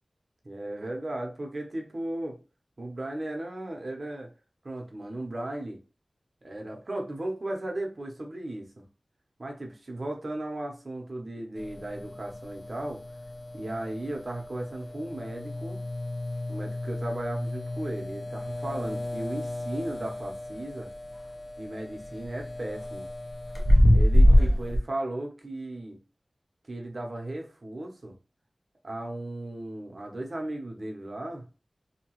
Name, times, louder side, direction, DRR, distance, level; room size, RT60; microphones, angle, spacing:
voice 1, 0.4-2.4 2.8-4.3 4.6-5.8 6.4-8.7 9.4-13.0 13.5-15.8 16.5-20.9 21.6-23.1 23.9-26.0 26.7-28.1 28.8-31.4, right 1 dB, 55° right, 2 dB, 0.8 m, -36 dB
sound 1, 11.6-24.8, equal, 50° left, 0.6 m, -27 dB
2.8 x 2.3 x 3.0 m, 0.33 s
wide cardioid pair, 65°, 0 cm